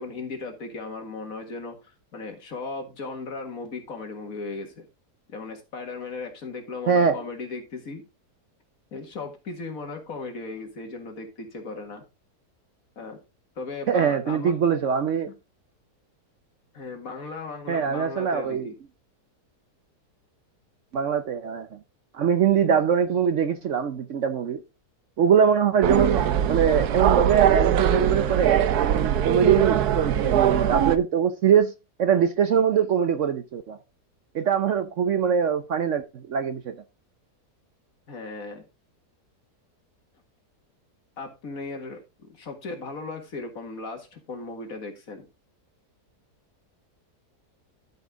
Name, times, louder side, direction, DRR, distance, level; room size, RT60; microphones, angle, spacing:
voice 1, 0.0-4.9 5.3-8.0 8.9-12.0 13.0-13.2 13.6-14.5 15.3-15.4 16.7-18.8 38.1-38.7 41.2-45.3, left 3 dB, 60° left, 2.2 m, -37 dB
voice 2, 6.9-7.2 13.9-15.3 17.7-18.7 20.9-21.8 22.1-24.6 25.2-31.7 32.0-33.8 34.3-36.8, right 7 dB, 60° right, 0.9 m, -23 dB
sound 1, 25.8-31.0, right 10 dB, 75° right, 1.2 m, -21 dB
12.0 x 5.6 x 3.7 m
omnidirectional pair, 1.7 m